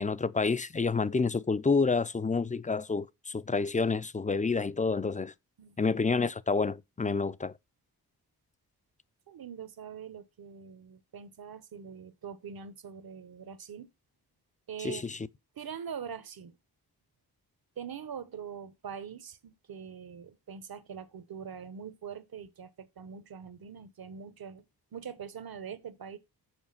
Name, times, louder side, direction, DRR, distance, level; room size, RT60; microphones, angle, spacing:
voice 1, 0.0-5.3 5.8-7.5 14.8-15.2, left 4 dB, 20° left, 0.4 m, -29 dB
voice 2, 9.3-13.9 14.7-15.1 15.6-16.6 17.8-24.6 24.9-26.2, right 7 dB, 60° right, 1.1 m, -43 dB
7.2 x 5.1 x 5.6 m
cardioid pair, 70°, 40 cm